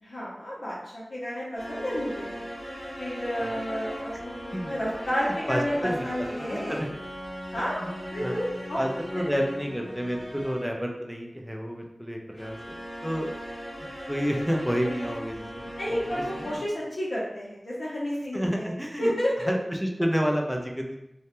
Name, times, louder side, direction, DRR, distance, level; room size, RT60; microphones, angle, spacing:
voice 1, 0.0-2.3 3.0-6.9 7.5-7.8 8.1-8.8 15.8-18.7 19.0-19.5, equal, 80° left, -7 dB, 0.6 m, -31 dB
sound 1, 1.6-10.8 12.3-16.6, equal, 15° left, 1.0 m, -38 dB
voice 2, 5.5-6.1 6.4-6.9 7.8-7.9 8.2-8.3 8.8-12.8 13.0-13.3 13.8-16.0 16.3-16.6 18.3-19.1 19.5-21.0, equal, 5° right, 1 dB, 0.4 m, -30 dB
2.2 x 2.0 x 2.9 m, 0.86 s
wide cardioid pair, 55°, 0 cm